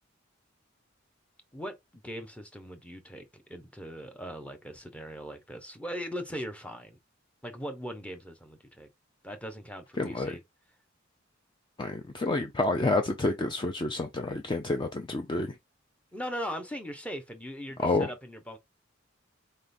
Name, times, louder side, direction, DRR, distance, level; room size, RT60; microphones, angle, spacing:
voice 1, 1.5-7.0 7.4-8.9 9.2-10.4 16.1-18.6, equal, 5° left, 0.8 m, -39 dB
voice 2, 10.0-10.3 11.8-15.5 17.8-18.1, left 2 dB, 25° left, 0.4 m, -29 dB
4.3 x 3.6 x 2.6 m
head